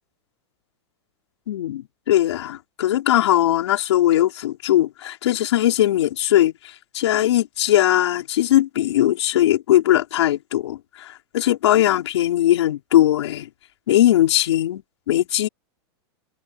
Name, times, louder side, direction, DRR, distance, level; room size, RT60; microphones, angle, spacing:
voice 1, 1.5-6.5 6.9-13.5 13.9-15.5, left 13 dB, 75° left, 5.5 m, -19 dB
supercardioid pair, 165°, 14 cm